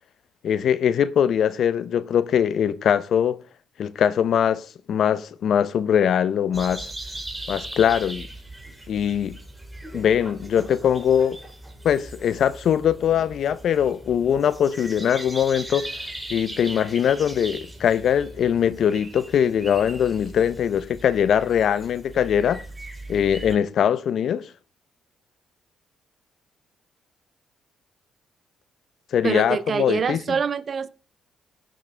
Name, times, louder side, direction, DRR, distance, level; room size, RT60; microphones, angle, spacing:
voice 1, 0.4-3.4 3.8-6.9 7.5-8.3 8.9-9.4 9.9-11.4 11.8-15.9 16.3-22.6 23.1-24.5 29.1-30.2, left 8 dB, 65° left, 0.7 m, -22 dB
sound 1, 6.5-23.6, right 1 dB, 10° right, 4.1 m, -39 dB
voice 2, 29.2-30.9, right 6 dB, 45° right, 0.6 m, -25 dB
16.5 x 6.2 x 3.3 m
cardioid pair, 90°, 0 cm